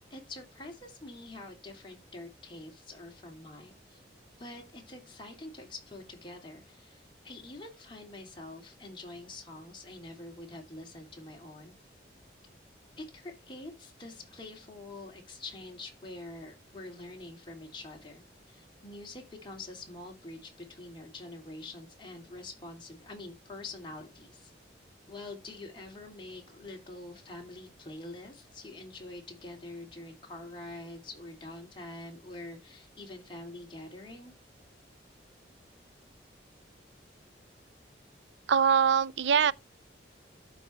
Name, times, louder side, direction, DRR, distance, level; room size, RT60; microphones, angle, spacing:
voice 1, 0.0-4.0 4.4-11.7 13.0-18.2 18.5-24.5 25.1-34.3, left 2 dB, 25° left, 2.9 m, -45 dB
voice 2, 38.5-39.5, right 7 dB, 70° right, 0.4 m, -23 dB
12.0 x 4.6 x 3.2 m
head